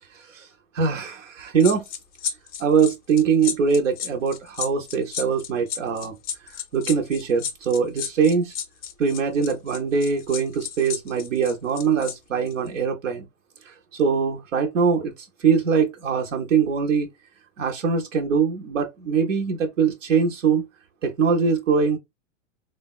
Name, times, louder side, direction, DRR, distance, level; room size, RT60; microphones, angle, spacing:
voice 1, 0.7-1.8 2.6-6.2 6.5-8.5 9.0-13.3 13.7-17.1 17.6-20.7 21.0-22.0, right 6 dB, 85° right, 0.7 m, -22 dB
sound 1, 1.6-12.1 12.5-12.7, left 8 dB, 25° left, 0.4 m, -32 dB
3.3 x 2.1 x 2.2 m
hypercardioid pair, 100°, 37 cm